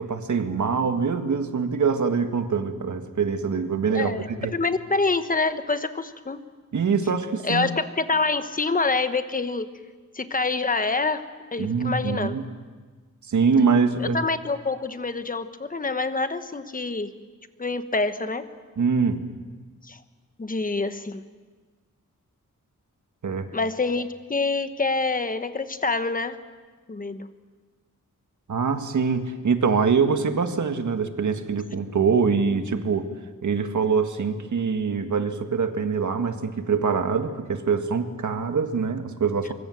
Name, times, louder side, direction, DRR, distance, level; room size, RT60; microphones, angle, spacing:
voice 1, 0.0-4.5 6.7-7.7 11.6-12.4 13.3-14.2 18.8-19.2 23.2-23.5 28.5-33.1 33.4-39.5, right 5 dB, 65° right, 7 dB, 1.8 m, -24 dB
voice 2, 3.9-6.4 7.4-9.7 10.1-11.2 11.5-12.4 14.0-17.1 17.6-18.5 19.8-20.0 20.4-21.2 23.5-26.4 26.9-27.3, left 3 dB, 25° left, 10 dB, 1.1 m, -26 dB
24.0 x 23.5 x 7.8 m, 1.4 s
wide cardioid pair, 175°, 32 cm